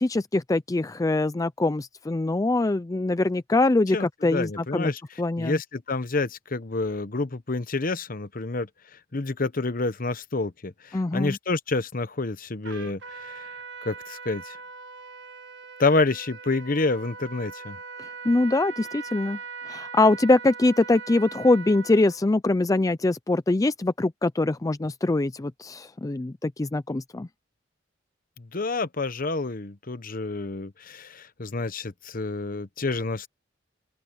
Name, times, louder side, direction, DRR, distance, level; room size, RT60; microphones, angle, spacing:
voice 1, 0.0-4.9 5.2-5.6 10.9-11.4 18.0-19.4 19.7-27.3, left 2 dB, 20° left, 0.4 m, -23 dB
voice 2, 3.9-5.0 5.4-8.7 9.1-13.5 13.8-14.6 15.8-17.8 28.4-33.3, left 3 dB, 45° left, 1.0 m, -28 dB
Trumpet, 12.6-22.2, right 5 dB, 65° right, 1.4 m, -41 dB
open air
head